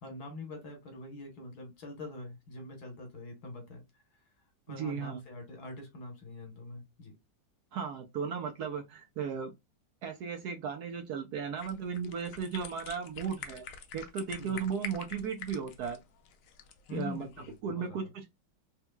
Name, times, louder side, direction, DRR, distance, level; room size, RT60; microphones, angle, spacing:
voice 1, 0.0-7.2 14.4-14.7 16.9-18.3, left 2 dB, 60° left, 1.5 m, -44 dB
voice 2, 4.7-5.2 7.7-9.5 10.0-13.6 13.9-16.0 16.9-17.3 17.6-18.3, right 6 dB, 70° right, 1.0 m, -35 dB
sound 1, 11.6-17.6, left 7 dB, 75° left, 0.7 m, -47 dB
3.4 x 3.0 x 2.2 m
omnidirectional pair, 2.0 m